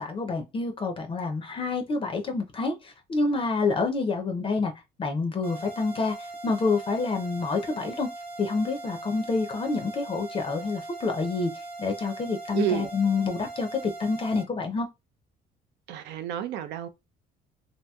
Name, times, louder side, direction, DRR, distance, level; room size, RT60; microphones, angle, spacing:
voice 1, 0.0-4.7 5.0-8.1 8.4-11.5 11.8-14.9, left 4 dB, 30° left, 0.5 m, -28 dB
sound 1, 5.4-14.4, right 2 dB, 65° right, 1.0 m, -40 dB
voice 2, 12.5-12.9 15.9-16.9, right 11 dB, 80° right, 0.5 m, -30 dB
2.8 x 2.6 x 2.2 m
cardioid pair, 110°, 17 cm